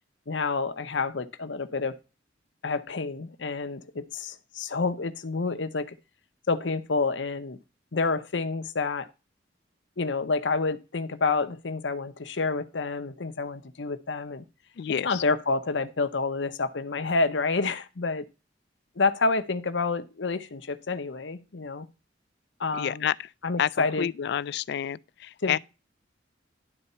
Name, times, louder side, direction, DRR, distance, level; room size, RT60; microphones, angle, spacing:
voice 1, 0.3-2.0 2.6-6.0 6.5-7.6 7.9-9.1 10.0-14.4 15.0-18.3 19.0-21.9 22.6-23.1 23.4-24.1 25.4-25.6, left 3 dB, 80° left, 0.8 m, -28 dB
voice 2, 14.8-15.2 22.8-23.3 23.6-25.6, left 9 dB, 60° left, 0.3 m, -29 dB
11.0 x 4.1 x 5.5 m
head